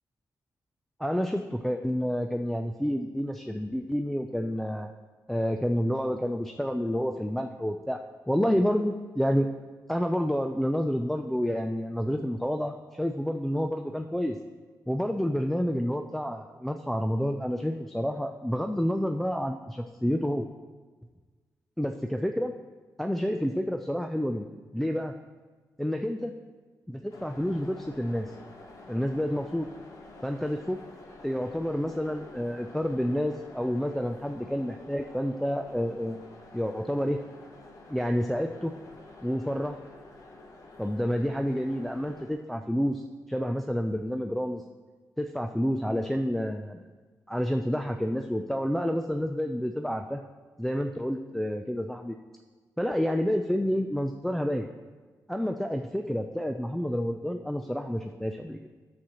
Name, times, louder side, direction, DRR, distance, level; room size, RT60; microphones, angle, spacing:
voice 1, 1.0-4.9 5.3-8.0 8.3-9.5 9.9-14.4 14.9-20.5 21.8-22.5 23.0-24.5 24.7-25.1 25.8-26.3 26.9-28.3 28.9-29.7 30.2-30.8 31.2-36.2 36.5-37.2 37.9-38.7 39.2-39.8 40.8-43.0 43.3-44.6 45.2-46.8 47.3-50.2 50.6-52.2 52.8-54.7 55.3-58.6, equal, 5° left, 4 dB, 0.3 m, -29 dB
sound 1, 27.1-42.3, left 2 dB, 50° left, 1.0 m, -49 dB
12.5 x 7.6 x 2.9 m, 1.4 s
wide cardioid pair, 165°, 7 cm